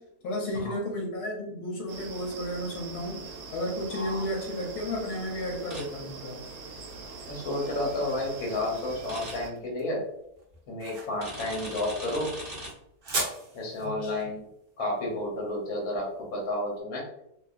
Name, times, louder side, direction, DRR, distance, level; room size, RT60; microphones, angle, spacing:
voice 1, 0.0-6.4 13.8-14.2, left 1 dB, 85° left, -2 dB, 1.2 m, -33 dB
sound 1, 1.9-9.5, right 3 dB, 80° right, 1.1 m, -43 dB
voice 2, 3.9-4.2 7.3-10.0 10.7-12.3 13.5-14.4 14.8-17.0, left 1 dB, 65° left, -1 dB, 1.3 m, -31 dB
sound 2, 5.7-5.8 9.1-9.3 11.2-12.7, right 1 dB, 30° right, 1.3 m, -39 dB
sound 3, 7.8-16.6, right 2 dB, 50° right, 0.7 m, -40 dB
2.7 x 2.3 x 2.3 m, 0.79 s
omnidirectional pair, 1.6 m